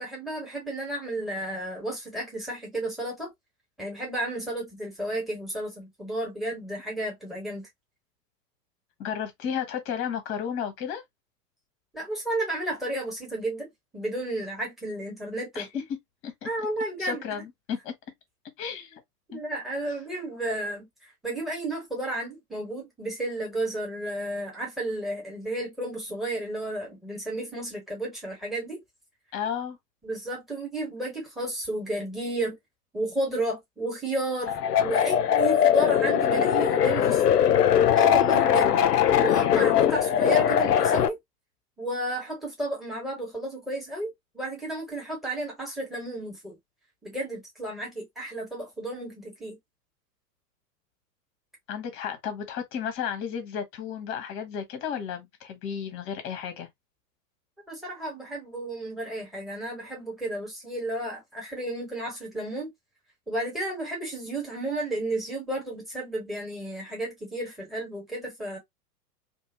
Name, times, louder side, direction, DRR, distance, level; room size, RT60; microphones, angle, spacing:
voice 1, 0.0-3.3 3.8-7.7 11.9-15.8 16.4-17.4 19.3-28.8 30.0-32.6 32.9-34.5 34.8-37.4 37.9-38.7 39.2-41.2 41.8-46.6 47.0-49.6 57.7-62.7 63.3-68.6, right 1 dB, ahead, 1.3 m, -32 dB
voice 2, 9.0-11.0 15.5-15.7 16.2-16.5 17.0-17.9 18.6-19.0 19.3-19.4 29.3-29.8 51.7-56.7, left 8 dB, 25° left, 1.0 m, -33 dB
sound 1, 34.5-41.1, left 9 dB, 80° left, 0.6 m, -21 dB
2.6 x 2.6 x 2.7 m
figure-of-eight pair, 105°, 47 cm